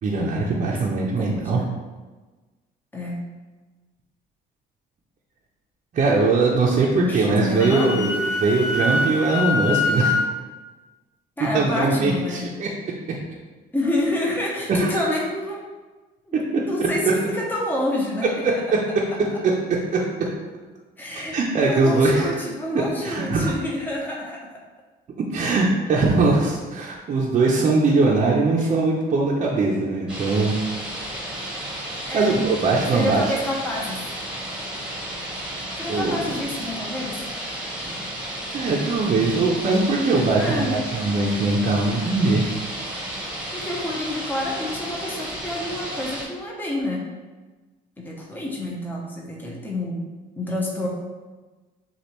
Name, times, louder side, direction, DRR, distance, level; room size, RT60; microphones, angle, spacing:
voice 1, 0.0-1.6 5.9-10.1 11.5-12.7 14.7-15.1 16.5-16.6 19.4-19.5 19.9-20.0 21.3-22.4 22.7-23.5 25.3-30.6 32.1-33.3 35.9-36.2 37.8-38.0 38.5-42.4, right 3 dB, 45° right, -3 dB, 0.7 m, -21 dB
voice 2, 1.2-1.7 2.9-3.2 6.9-8.1 11.4-12.4 13.7-15.6 16.3-18.5 21.0-21.4 21.7-24.4 28.6-28.7 32.1-34.0 35.8-37.2 40.4-40.9 43.5-47.0 48.0-50.0 50.4-50.9, left 1 dB, 10° left, -3 dB, 0.8 m, -28 dB
Wind instrument woodwind instrument, 7.3-10.3, left 3 dB, 80° left, 0.5 m, -24 dB
sound 1, 30.1-46.3, right 1 dB, 5° right, 1.2 m, -33 dB
6.5 x 2.4 x 3.0 m, 1.3 s
cardioid pair, 110°, 17 cm